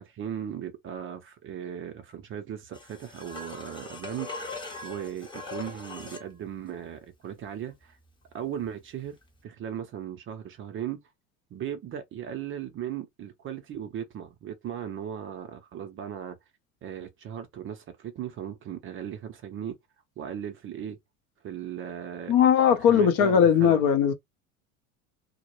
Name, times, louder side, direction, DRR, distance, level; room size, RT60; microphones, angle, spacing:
voice 1, 0.0-8.0 8.3-9.2 9.4-11.0 11.5-16.4 16.8-19.8 20.2-21.0 21.4-22.4 22.7-23.9, right 9 dB, 30° right, 0.5 m, -37 dB
sound 1, 2.7-6.3 9.2-9.3, left 3 dB, 10° left, 0.7 m, -40 dB
voice 2, 22.3-24.1, left 8 dB, 50° left, 0.6 m, -19 dB
2.1 x 2.0 x 2.9 m
hypercardioid pair, 75°, 43 cm